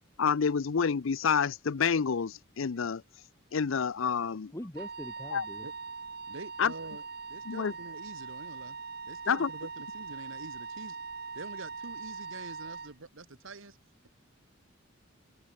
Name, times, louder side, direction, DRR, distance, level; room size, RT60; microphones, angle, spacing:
voice 1, 0.2-3.0 3.5-4.5 5.3-5.5 6.6-6.7 7.5-7.7 9.3-9.5, left 6 dB, 75° left, 0.5 m, -28 dB
voice 2, 4.5-5.7, left 1 dB, 15° left, 1.2 m, -42 dB
Wind instrument woodwind instrument, 4.7-12.9, right 5 dB, 50° right, 3.2 m, -42 dB
voice 3, 6.3-7.0 7.3-8.8 9.1-11.0 11.4-13.8, right 3 dB, 75° right, 1.7 m, -46 dB
head